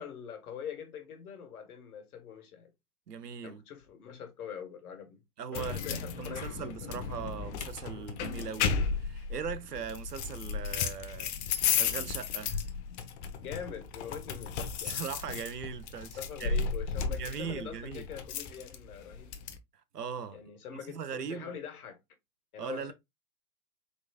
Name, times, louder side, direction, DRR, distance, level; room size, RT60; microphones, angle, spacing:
voice 1, 0.0-2.7 3.4-5.2 5.5-7.0 13.4-15.0 16.2-19.3 20.3-22.0 22.5-22.9, left 7 dB, 70° left, 1.7 m, -43 dB
voice 2, 3.1-3.6 5.4-12.6 14.8-16.6 17.2-18.0 19.9-20.4 20.9-21.5 22.6-22.9, right 7 dB, 90° right, 0.9 m, -40 dB
sound 1, 5.5-19.6, left 6 dB, 45° left, 0.9 m, -34 dB
4.7 x 3.9 x 2.3 m
hypercardioid pair, 110°, 46 cm